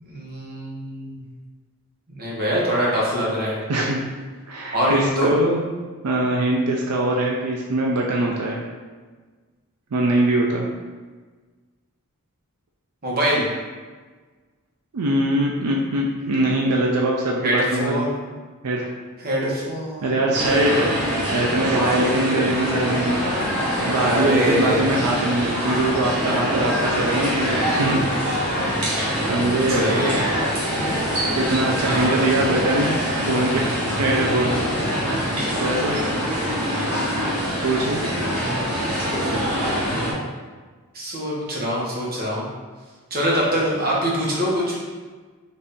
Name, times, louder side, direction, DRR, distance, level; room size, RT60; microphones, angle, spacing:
voice 1, 0.0-1.2 2.1-3.6 4.7-5.3 13.0-13.4 17.4-18.3 19.2-20.3 24.0-24.8 28.6-29.4 29.7-30.4 31.8-32.5 36.5-37.2 38.2-38.7 40.9-42.5 43.1-44.8, equal, 45° right, -5 dB, 1.1 m, -24 dB
voice 2, 3.7-4.0 4.5-5.6 6.0-8.6 9.9-10.7 14.9-18.0 18.6-18.9 20.0-20.9 21.3-23.2 23.9-28.0 29.3-30.2 31.4-33.7 34.0-34.6 35.6-36.0 37.6-38.0, right 1 dB, 90° right, -1 dB, 0.5 m, -22 dB
sound 1, 20.3-40.1, equal, 70° right, 1.4 m, -24 dB
4.1 x 2.6 x 3.6 m, 1.4 s
head